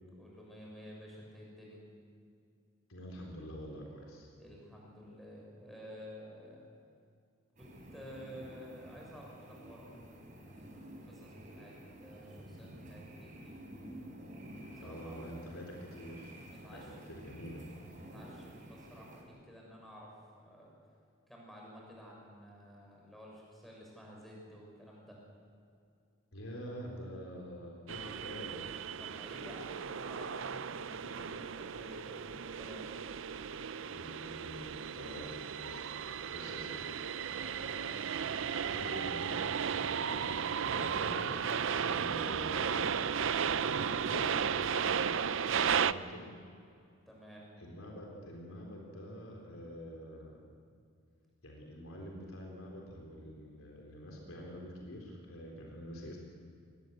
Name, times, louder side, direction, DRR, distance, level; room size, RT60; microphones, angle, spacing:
voice 1, 0.2-1.9 4.3-6.6 7.6-10.0 10.5-13.6 14.7-15.2 16.4-17.2 18.0-20.7 21.3-25.2 29.0-32.9 37.3-38.0 47.1-47.4, equal, ahead, -3 dB, 6.5 m, -52 dB
voice 2, 2.9-4.3 14.8-16.4 16.7-17.6 26.3-28.6 33.9-36.0 36.3-37.4 38.6-39.5 39.8-40.3 40.6-41.5 41.9-43.2 43.7-45.0 45.5-46.3 47.6-50.4 51.4-56.2, equal, 75° left, -1 dB, 4.0 m, -46 dB
sound 1, 7.6-19.2, right 1 dB, 35° right, 4.5 m, -51 dB
sound 2, 27.9-45.9, right 7 dB, 65° right, 0.5 m, -35 dB
22.5 x 20.0 x 8.0 m, 2.4 s
head